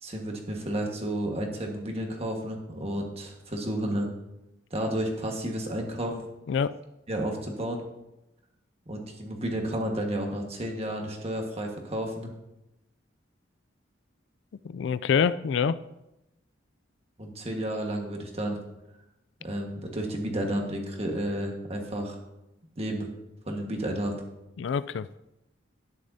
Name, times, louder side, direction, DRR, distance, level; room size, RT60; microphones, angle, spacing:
voice 1, 0.0-4.1 4.7-6.2 7.1-7.8 8.9-12.3 17.2-18.6 19.4-22.2 22.8-23.1 23.5-24.2, right 1 dB, 35° right, 2 dB, 1.5 m, -31 dB
voice 2, 14.6-15.8 24.6-25.1, left 6 dB, 70° left, 16 dB, 0.3 m, -26 dB
12.0 x 9.8 x 2.7 m, 0.91 s
head